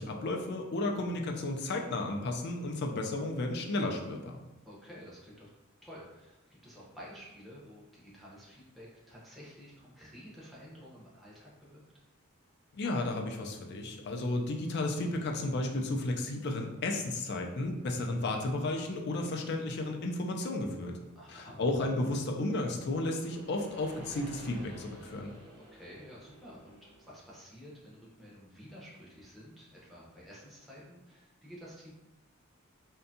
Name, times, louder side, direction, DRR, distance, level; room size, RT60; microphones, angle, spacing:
voice 1, 0.0-4.4 12.7-21.0 21.3-25.3, left 2 dB, 55° left, 2 dB, 0.4 m, -33 dB
voice 2, 4.7-5.5 5.8-11.8 21.1-21.6 25.5-31.9, equal, ahead, -7 dB, 0.6 m, -51 dB
sound 1, 20.8-27.4, right 1 dB, 50° right, 0.7 m, -53 dB
2.6 x 2.2 x 2.6 m, 1.0 s
head